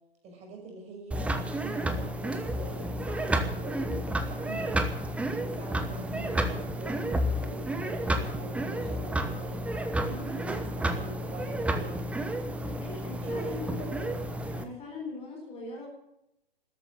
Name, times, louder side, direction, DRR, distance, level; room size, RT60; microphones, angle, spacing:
voice 1, 0.2-4.9 5.4-9.6 10.2-12.1 13.2-14.2, right 3 dB, 20° right, 1 dB, 5.8 m, -44 dB
sound 1, 1.1-14.6, right 1 dB, 5° right, 1.0 m, -31 dB
voice 2, 12.6-13.9 14.5-15.9, left 3 dB, 20° left, 1 dB, 4.2 m, -41 dB
13.5 x 12.5 x 8.4 m, 0.82 s
figure-of-eight pair, 120°, 31 cm